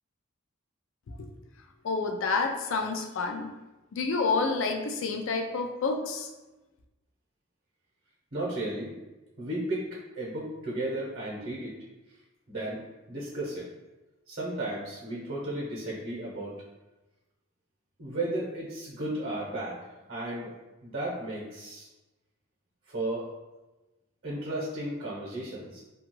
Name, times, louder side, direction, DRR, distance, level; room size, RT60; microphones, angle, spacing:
voice 1, 1.8-3.5 3.9-6.3, left 4 dB, 60° left, 4 dB, 0.3 m, -29 dB
voice 2, 8.3-8.9 9.4-11.7 12.5-12.8 13.1-13.7 14.3-16.6 18.0-20.5 20.8-21.9 22.9-23.3 24.2-25.8, right 1 dB, 50° right, -5 dB, 0.8 m, -34 dB
2.8 x 2.3 x 2.9 m, 1.1 s
head